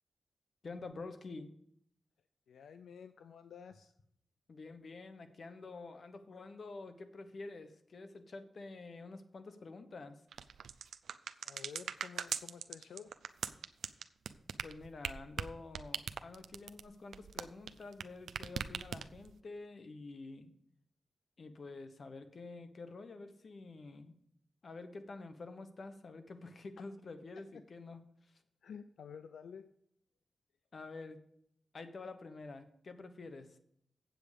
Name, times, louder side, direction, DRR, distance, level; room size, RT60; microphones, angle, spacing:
voice 1, 0.6-1.5 4.5-10.2 14.6-20.5 21.4-24.1 24.6-28.4 30.7-31.2 31.7-33.6, left 3 dB, 60° left, 9 dB, 1.1 m, -48 dB
voice 2, 2.5-3.9 11.4-13.1 28.6-29.6, left 7 dB, 90° left, 10 dB, 0.4 m, -51 dB
sound 1, 10.3-18.0 18.3-19.3, right 7 dB, 90° right, 0.4 m, -40 dB
8.0 x 7.7 x 5.1 m, 0.70 s
cardioid pair, 60°, 0 cm